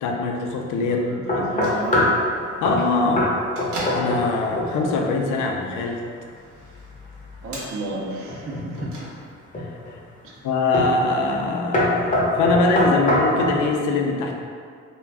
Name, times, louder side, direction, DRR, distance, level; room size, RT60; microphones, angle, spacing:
voice 1, 0.0-1.5 2.6-3.3 3.9-6.0 9.6-10.0 10.4-14.3, left 3 dB, 80° left, 2 dB, 0.4 m, -23 dB
voice 2, 0.8-2.2 7.4-9.1 10.2-10.4, right 1 dB, 45° right, -3 dB, 0.5 m, -33 dB
sound 1, 1.3-2.2 2.6-2.8 3.2-3.3 3.6-4.3 4.6-4.9 8.3-8.9 9.5-9.9 10.7-11.0 11.3-11.5 11.7-13.6, left 1 dB, 25° left, 0.7 m, -22 dB
Bell / Microwave oven, 1.3-9.6, right 1 dB, 75° right, 0.8 m, -39 dB
2.4 x 2.2 x 3.3 m, 2.2 s
cardioid pair, 90°, 30 cm